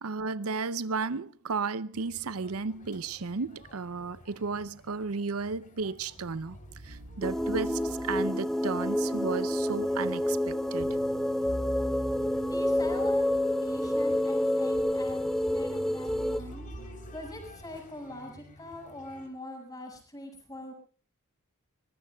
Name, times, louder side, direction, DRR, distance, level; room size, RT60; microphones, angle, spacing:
voice 1, 0.0-6.6 6.8-11.0 16.4-16.5, right 4 dB, 90° right, 0.7 m, -34 dB
sound 1, 1.9-19.3, left 1 dB, 40° left, 3.7 m, -53 dB
sound 2, 6.1-18.1, equal, 60° right, 6.9 m, -45 dB
sound 3, 7.2-16.4, left 1 dB, ahead, 0.9 m, -28 dB
voice 2, 12.4-13.3 13.6-16.7 17.1-20.7, left 1 dB, 20° left, 6.3 m, -43 dB
24.0 x 20.5 x 2.3 m
head